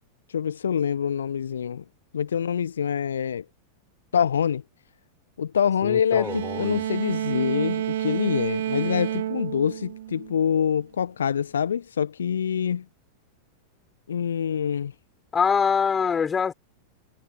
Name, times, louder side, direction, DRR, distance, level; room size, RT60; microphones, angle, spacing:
voice 1, 0.3-1.8 2.1-3.4 4.1-4.6 5.4-12.8 14.1-14.9, left 8 dB, 65° left, 1.3 m, -25 dB
voice 2, 5.8-6.8 15.3-16.5, left 6 dB, 20° left, 5.7 m, -24 dB
sound 1, 6.2-10.7, right 12 dB, 60° right, 3.1 m, -30 dB
figure-of-eight pair, 90°, 0 cm